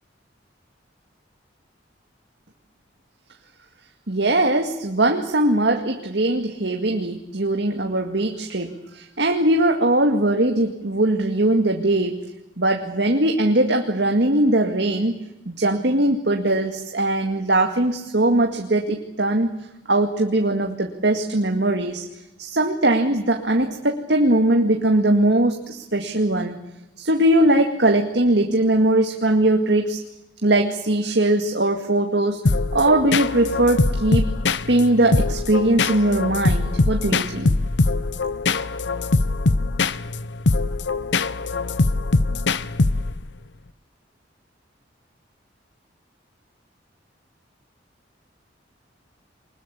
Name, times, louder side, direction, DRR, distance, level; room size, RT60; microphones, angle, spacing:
voice 1, 4.1-12.2 12.6-15.2 15.5-19.5 19.9-22.0 22.4-26.5 27.0-30.0 30.4-32.4 32.7-34.2 34.7-37.5, right 1 dB, 65° right, 4 dB, 2.1 m, -20 dB
sound 1, 32.5-43.3, left 3 dB, 70° left, 0.8 m, -22 dB
24.5 x 21.0 x 8.4 m, 0.89 s
head